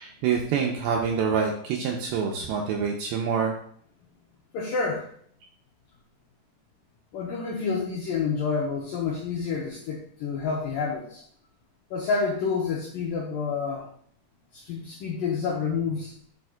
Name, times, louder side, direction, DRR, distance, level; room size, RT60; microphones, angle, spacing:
voice 1, 0.0-3.6, right 6 dB, 80° right, 1 dB, 2.3 m, -26 dB
voice 2, 4.5-5.1 7.1-11.2 11.9-13.9 14.5-16.1, left 5 dB, 80° left, -2 dB, 2.0 m, -28 dB
10.5 x 4.3 x 2.3 m, 0.62 s
omnidirectional pair, 4.9 m